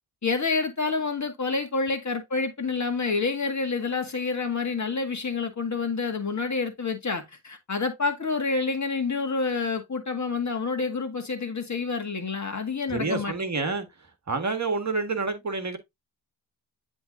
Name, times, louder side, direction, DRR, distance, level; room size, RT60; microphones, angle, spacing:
voice 1, 0.2-13.3, left 4 dB, 35° left, 1.9 m, -28 dB
voice 2, 12.9-13.9 14.3-15.8, right 3 dB, 35° right, 1.7 m, -28 dB
10.0 x 3.7 x 2.6 m
supercardioid pair, 50°, 49 cm